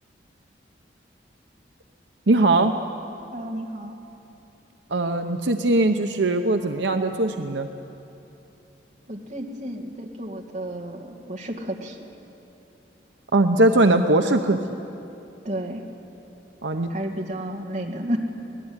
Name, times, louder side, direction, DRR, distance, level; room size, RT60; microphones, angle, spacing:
voice 1, 2.3-2.8 4.9-7.7 13.3-14.6 16.6-16.9, right 2 dB, 75° right, 6 dB, 0.9 m, -20 dB
voice 2, 3.3-4.0 9.1-12.0 15.4-15.8 16.9-18.2, right 1 dB, 40° right, 2 dB, 2.3 m, -32 dB
25.0 x 18.5 x 9.8 m, 2.9 s
head